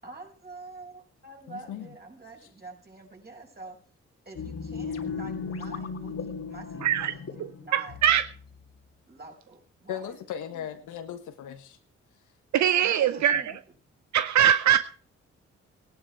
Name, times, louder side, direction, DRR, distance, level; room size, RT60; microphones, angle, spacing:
voice 1, 0.0-3.8 4.2-8.0 9.1-10.7 12.8-13.8, right 2 dB, 35° right, 5.9 m, -47 dB
voice 2, 1.5-1.9 9.9-11.8 13.2-13.3, left 9 dB, 80° left, 1.5 m, -37 dB
sound 1, 4.4-8.6, left 5 dB, 55° left, 2.2 m, -36 dB
voice 3, 6.8-7.1 7.4-8.3 12.5-13.5 14.1-14.8, right 10 dB, 70° right, 0.7 m, -22 dB
16.5 x 11.0 x 4.7 m
supercardioid pair, 45°, 30 cm